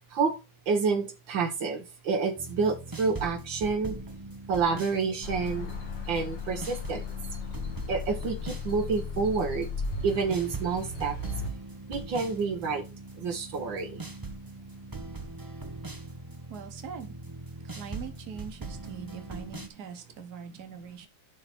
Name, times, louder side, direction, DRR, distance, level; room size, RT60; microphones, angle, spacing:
voice 1, 0.7-3.9 4.5-5.7 6.1-7.0 7.9-9.7 10.0-11.1 11.9-12.8 13.2-14.0, right 4 dB, 75° right, 4 dB, 1.8 m, -28 dB
sound 1, 2.4-19.7, right 2 dB, 15° right, 0.7 m, -41 dB
sound 2, 5.2-11.5, left 4 dB, 70° left, 2.6 m, -36 dB
voice 2, 16.5-17.2 17.8-21.1, right 7 dB, 55° right, 7 dB, 1.8 m, -42 dB
11.0 x 3.8 x 4.3 m, 0.26 s
omnidirectional pair, 2.1 m